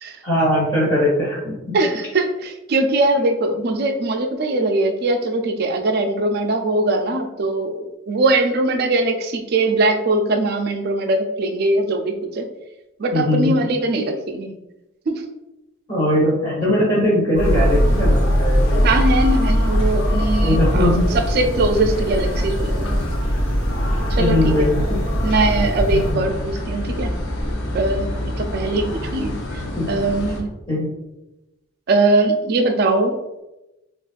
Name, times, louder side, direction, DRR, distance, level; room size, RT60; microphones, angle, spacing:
voice 1, 0.2-1.8 13.1-13.6 15.9-18.8 20.4-21.0 24.2-25.0 25.9-26.2 29.7-29.9 30.7-30.9, left 1 dB, 25° left, -9 dB, 1.4 m, -20 dB
voice 2, 1.7-12.5 13.0-14.5 15.1-15.2 18.8-23.0 24.1-24.7 25.2-27.1 27.7-28.1 28.4-29.6 29.9-30.5 31.9-33.2, right 2 dB, 50° right, 5 dB, 0.4 m, -21 dB
sound 1, 17.3-26.1, equal, 40° left, 1.4 m, -20 dB
sound 2, 17.4-30.4, left 1 dB, 65° left, 0.6 m, -29 dB
3.9 x 2.3 x 2.4 m, 0.97 s
head